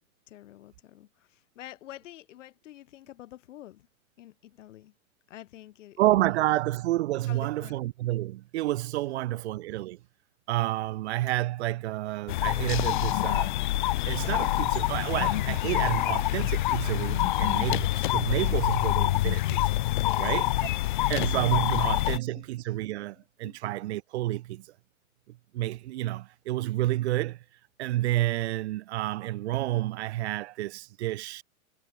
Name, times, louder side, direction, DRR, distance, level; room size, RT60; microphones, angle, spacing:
voice 1, 0.3-3.9 4.2-4.9 5.3-6.0 6.3-6.4 7.3-7.8 9.1-9.2 17.4-17.7 19.9-20.3 20.7-21.4 21.6-22.5 23.4-23.6, left 14 dB, 55° left, 2.9 m, -48 dB
voice 2, 6.0-10.0 10.5-13.5 14.0-19.7 20.2-20.5 21.1-24.7 25.3-27.4 27.8-31.4, right 16 dB, 50° right, 2.2 m, -29 dB
sound 1, 12.3-22.2, left 16 dB, 35° left, 0.6 m, -26 dB
hypercardioid pair, 160°, 43 cm